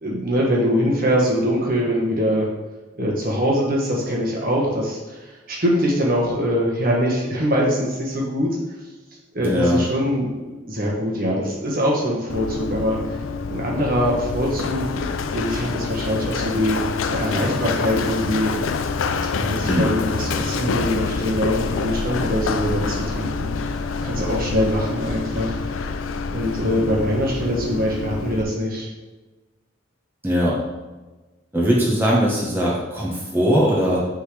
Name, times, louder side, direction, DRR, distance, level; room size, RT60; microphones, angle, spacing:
voice 1, 0.0-2.5 3.0-8.6 9.3-13.0 13.5-14.9 15.3-16.8 17.1-18.5 19.4-23.5 24.0-25.7 26.3-28.9, equal, 45° right, -3 dB, 1.4 m, -23 dB
voice 2, 9.4-9.8 19.6-19.9 30.2-30.6 31.5-34.0, equal, 10° right, -6 dB, 1.2 m, -20 dB
Run, 12.3-28.4, left 4 dB, 80° left, 0.4 m, -26 dB
9.1 x 3.8 x 3.3 m, 1.2 s
head